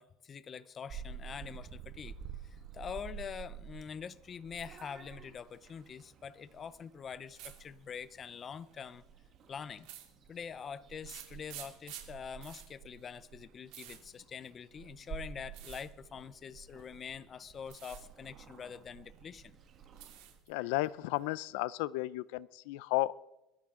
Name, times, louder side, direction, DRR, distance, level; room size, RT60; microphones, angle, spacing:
voice 1, 0.0-2.1 2.4-9.0 9.5-9.9 10.3-19.6, left 7 dB, 25° left, 0.6 m, -45 dB
Purr / Meow, 0.9-20.4, right 7 dB, 35° right, 1.8 m, -51 dB
sound 1, 4.5-5.1 5.4-6.1 7.3-7.6 8.5-8.8 9.8-10.6 11.0-14.9 15.5-15.9 16.8-17.2 17.6-18.0 18.4-19.2 19.5-20.5 20.8-21.5, right 12 dB, 65° right, 2.8 m, -51 dB
voice 2, 20.5-23.1, left 18 dB, 75° left, 0.4 m, -33 dB
21.5 x 13.0 x 3.7 m
cardioid pair, 155°, 0 cm